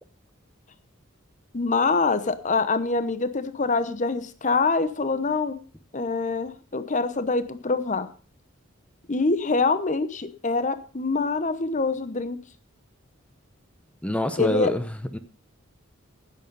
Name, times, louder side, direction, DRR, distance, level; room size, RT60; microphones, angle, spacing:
voice 1, 1.5-5.6 5.9-8.1 9.1-12.4 14.4-14.7, left 4 dB, 35° left, 12 dB, 0.8 m, -25 dB
voice 2, 14.0-15.2, equal, 5° left, 10 dB, 0.7 m, -26 dB
10.5 x 9.5 x 5.4 m, 0.38 s
head